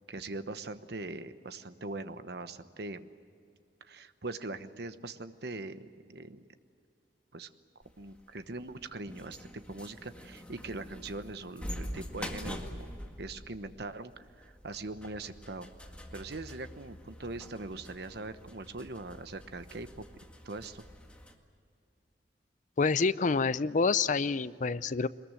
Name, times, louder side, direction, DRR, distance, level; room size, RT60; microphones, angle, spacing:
voice 1, 0.1-3.1 3.8-6.5 7.3-7.5 8.0-12.9 13.2-15.7 16.1-20.0 20.4-20.8, right 2 dB, 65° right, 11 dB, 1.1 m, -41 dB
sound 1, 7.8-21.3, equal, 5° left, 1.9 m, -45 dB
voice 2, 22.8-25.1, left 4 dB, 45° left, 16 dB, 0.5 m, -27 dB
23.0 x 21.0 x 9.1 m, 2.4 s
head